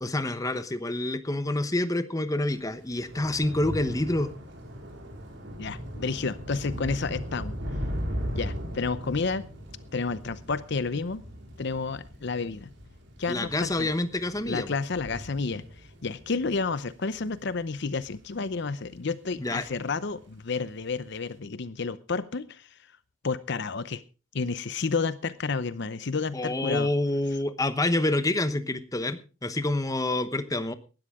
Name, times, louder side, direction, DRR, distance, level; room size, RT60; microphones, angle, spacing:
voice 1, 0.0-4.3 13.3-14.7 19.4-19.6 26.3-30.7, left 2 dB, 15° left, 11 dB, 1.0 m, -27 dB
Thunder / Rain, 2.5-19.1 19.4-19.9 20.1-20.3, equal, 60° right, 4.6 m, -38 dB
voice 2, 5.6-7.6 8.3-9.5 9.9-11.2 11.6-12.7 13.2-13.9 14.4-22.8 23.2-24.0 24.3-26.9, left 4 dB, 55° left, 15 dB, 0.7 m, -31 dB
18.5 x 13.0 x 3.6 m, 0.33 s
head